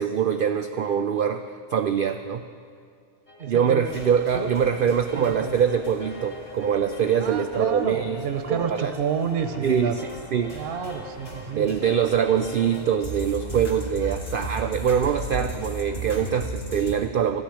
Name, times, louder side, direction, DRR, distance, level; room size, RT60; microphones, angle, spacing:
voice 1, 0.0-2.4 3.5-8.9 9.6-10.5 11.5-17.4, right 8 dB, 90° right, 8 dB, 0.4 m, -24 dB
sound 1, 3.3-16.9, right 2 dB, 35° left, 1.8 m, -37 dB
voice 2, 3.4-3.9 4.3-4.5 5.1-5.5 7.2-10.0 10.5-11.7, right 6 dB, 50° right, 7 dB, 0.8 m, -29 dB
sound 2, 3.8-16.2, right 1 dB, 65° left, 2.9 m, -45 dB
14.0 x 6.5 x 10.0 m, 2.2 s
omnidirectional pair, 1.5 m